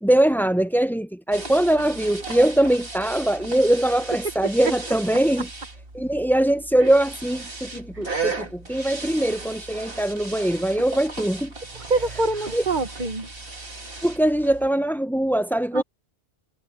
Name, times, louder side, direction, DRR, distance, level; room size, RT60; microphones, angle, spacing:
voice 1, 0.0-5.5 5.9-11.5 12.5-12.6 14.0-15.8, right 1 dB, ahead, 0.6 m, -22 dB
sound 1, 1.3-14.7, right 3 dB, 65° right, 2.9 m, -36 dB
voice 2, 11.7-13.3 15.7-15.8, right 3 dB, 50° right, 1.4 m, -26 dB
omnidirectional pair, 1.0 m